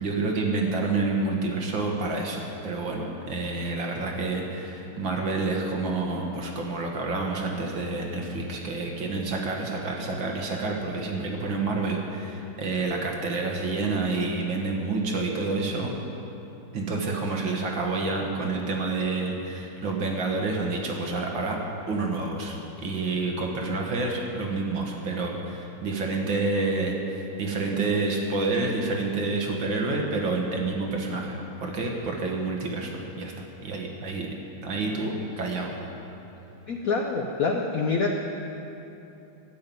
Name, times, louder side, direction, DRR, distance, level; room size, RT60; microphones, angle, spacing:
voice 1, 0.0-15.9 16.7-21.6 21.9-34.3 34.6-35.7, right 3 dB, 60° right, 0 dB, 2.2 m, -28 dB
voice 2, 36.7-38.2, left 4 dB, 65° left, 2 dB, 0.8 m, -26 dB
12.5 x 7.7 x 9.2 m, 2.9 s
omnidirectional pair, 2.4 m